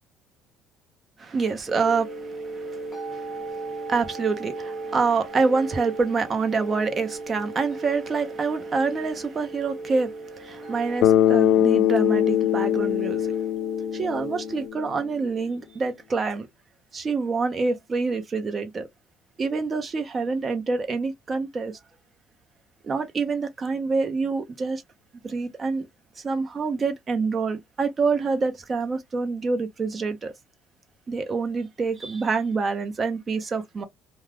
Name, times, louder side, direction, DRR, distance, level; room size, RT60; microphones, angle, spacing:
voice 1, 1.2-2.2 2.5-13.3 13.9-16.5 16.9-18.9 19.4-21.7 22.8-24.8 25.2-25.9 26.2-30.3 31.1-33.8, right 4 dB, 25° right, 0.7 m, -26 dB
sound 1, 1.7-14.7, right 3 dB, 15° left, 0.7 m, -37 dB
Bass guitar, 11.0-15.0, left 11 dB, 75° left, 0.4 m, -22 dB
2.3 x 2.3 x 3.3 m
cardioid pair, 140°, 0 cm